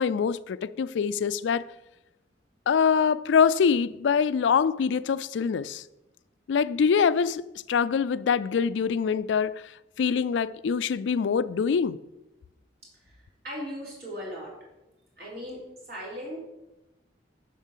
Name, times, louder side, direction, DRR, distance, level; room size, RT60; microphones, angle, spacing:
voice 1, 0.0-1.7 2.7-5.8 6.5-9.5 10.0-12.0, left 6 dB, 85° left, 0.4 m, -24 dB
voice 2, 13.0-14.5 15.2-15.6 15.9-16.4, equal, 55° right, 3.8 m, -38 dB
7.5 x 5.4 x 7.3 m
head